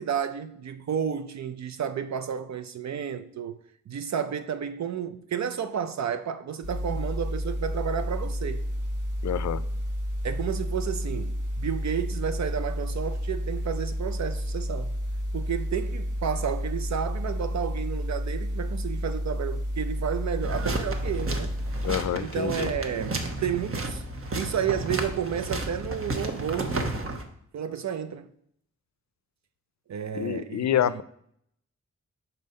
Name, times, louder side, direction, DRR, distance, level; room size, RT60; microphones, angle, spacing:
voice 1, 0.0-3.6 3.9-8.6 10.2-14.9 15.3-21.5 22.2-24.0 24.3-26.9 27.5-28.3 29.9-31.0, right 8 dB, 60° right, 0.5 m, -31 dB
sound 1, 6.6-21.9, equal, 80° right, 1.6 m, -31 dB
voice 2, 9.2-9.6 21.8-22.7 30.2-31.0, left 10 dB, 65° left, 0.4 m, -27 dB
sound 2, 20.4-27.2, right 2 dB, 45° right, 1.0 m, -32 dB
5.4 x 4.0 x 5.3 m
cardioid pair, 60°, 31 cm